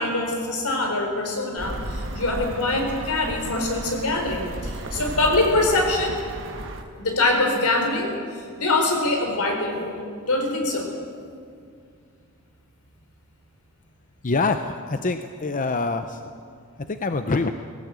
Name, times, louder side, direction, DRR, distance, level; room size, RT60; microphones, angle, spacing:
voice 1, 0.0-6.2 7.0-8.1 8.6-10.0 10.2-10.9, left 2 dB, 75° left, 3 dB, 4.2 m, -24 dB
sound 1, 1.6-6.8, right 1 dB, 60° right, 1.7 m, -34 dB
voice 2, 14.2-16.2 16.9-17.5, left 3 dB, 35° left, 8 dB, 0.7 m, -25 dB
18.5 x 17.5 x 8.3 m, 2.3 s
head